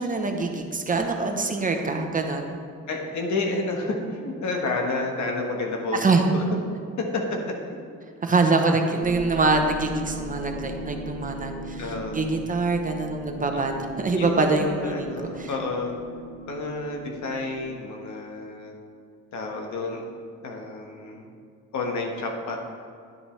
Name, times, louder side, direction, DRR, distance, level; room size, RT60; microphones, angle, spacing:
voice 1, 0.0-2.6 5.9-6.3 8.2-15.5, right 3 dB, 25° right, 4 dB, 0.9 m, -24 dB
voice 2, 2.9-6.0 6.3-6.6 7.0-7.4 7.7-7.8 11.8-12.3 13.5-13.6 14.1-16.0 16.5-18.7 19.3-20.0 20.4-21.3 21.7-22.6, left 3 dB, 70° left, 1 dB, 1.3 m, -30 dB
sound 1, 9.0-17.6, right 2 dB, ahead, 2.1 m, -38 dB
10.0 x 7.0 x 3.2 m, 2.3 s
cardioid pair, 90°, 30 cm